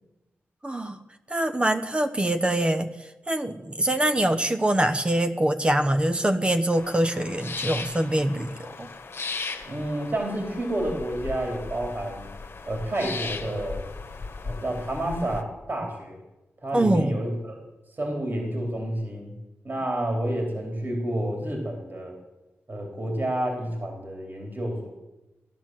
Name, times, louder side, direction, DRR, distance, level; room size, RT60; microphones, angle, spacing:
voice 1, 0.6-1.0 1.3-8.9 16.7-17.1, right 1 dB, 20° right, 8 dB, 0.9 m, -24 dB
sound 1, 6.7-15.4, left 4 dB, 55° left, 1.4 m, -37 dB
voice 2, 9.6-12.3 12.7-13.8 14.4-16.2 16.6-17.6 18.0-19.3 19.6-22.2 22.7-24.9, right 1 dB, 40° right, 1 dB, 3.6 m, -29 dB
16.5 x 11.0 x 7.6 m, 1.0 s
wide cardioid pair, 90°, 5 cm